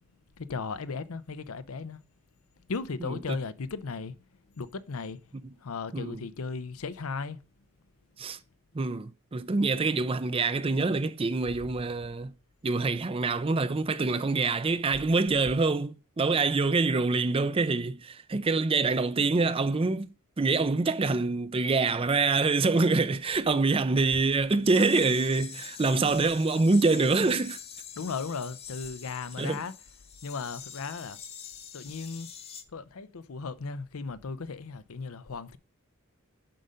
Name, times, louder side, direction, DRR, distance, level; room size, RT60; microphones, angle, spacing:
voice 1, 0.4-2.0 2.7-4.2 4.5-5.2 5.6-7.4 28.0-29.7 30.2-31.2 31.7-32.3 32.7-35.6, left 4 dB, 80° left, 0.6 m, -36 dB
voice 2, 8.7-12.3 12.6-27.6 29.4-29.6, right 3 dB, 25° right, 0.4 m, -25 dB
sound 1, 24.6-32.6, left 8 dB, 30° left, 0.9 m, -45 dB
7.6 x 5.4 x 5.2 m
head